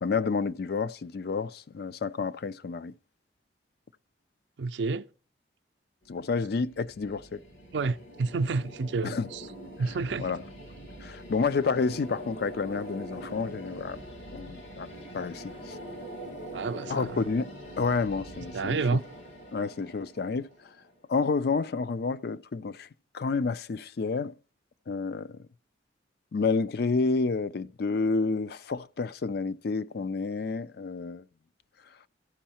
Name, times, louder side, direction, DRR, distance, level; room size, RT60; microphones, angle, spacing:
voice 1, 0.0-2.9 6.1-7.4 9.0-9.3 10.2-10.4 11.0-14.0 14.3-14.9 15.1-15.8 16.9-17.5 17.8-18.8 19.5-20.5 21.1-22.9 23.1-24.3 24.9-25.4 26.3-31.2, left 4 dB, 60° left, 0.4 m, -29 dB
voice 2, 4.6-5.1 7.7-9.5 9.8-10.3 16.5-17.2 18.5-19.0, right 4 dB, 75° right, 0.4 m, -29 dB
sound 1, 6.0-21.1, equal, 80° left, 3.6 m, -44 dB
15.0 x 5.5 x 4.3 m
head